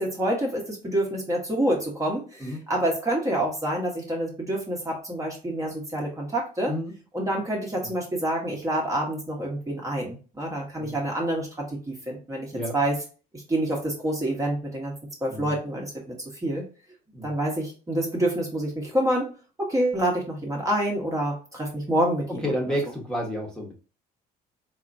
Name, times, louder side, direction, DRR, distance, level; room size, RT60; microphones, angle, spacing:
voice 1, 0.0-6.7 7.1-12.9 13.3-14.9 15.2-16.2 16.4-16.6 17.2-19.3 19.6-22.4, right 1 dB, 20° right, -1 dB, 1.2 m, -27 dB
voice 2, 22.4-23.7, equal, 5° left, -1 dB, 1.2 m, -30 dB
4.1 x 2.9 x 2.6 m, 0.36 s
cardioid pair, 110°, 17 cm